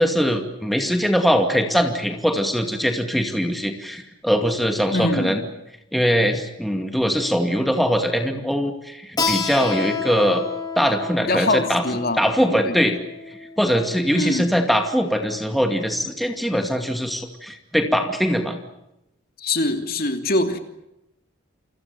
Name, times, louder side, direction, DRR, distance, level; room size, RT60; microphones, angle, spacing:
voice 1, 0.0-5.4 5.9-10.4 10.8-11.8 12.2-13.0 13.3-18.6, equal, ahead, 4 dB, 2.4 m, -21 dB
voice 2, 4.9-5.4 11.3-12.2 12.5-12.8 14.1-14.5 19.4-20.6, left 2 dB, 45° left, 6 dB, 3.0 m, -23 dB
Keyboard (musical), 9.2-14.4, left 5 dB, 20° left, 2.8 m, -30 dB
29.5 x 25.0 x 7.1 m, 0.86 s
head